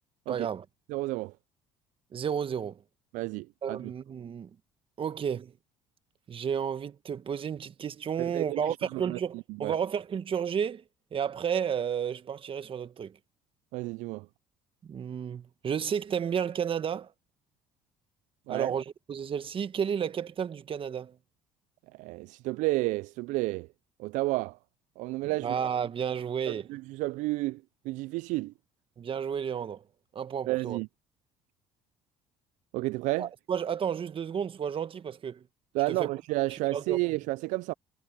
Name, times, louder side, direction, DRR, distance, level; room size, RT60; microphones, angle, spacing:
voice 1, 0.3-0.6 2.1-2.8 3.6-4.5 5.0-5.5 6.3-10.8 11.1-13.2 14.8-17.1 18.5-21.2 25.4-26.7 29.0-29.8 30.1-30.8 33.2-35.4 35.9-36.1 36.5-37.0, right 7 dB, 40° right, 1.6 m, -32 dB
voice 2, 0.9-1.3 3.1-3.9 8.2-9.7 13.7-14.3 18.5-18.7 21.9-23.7 24.0-24.6 25.0-25.6 26.5-28.5 30.5-30.9 32.7-33.3 35.7-37.7, right 21 dB, 70° right, 0.4 m, -31 dB
supercardioid pair, 75°, 13 cm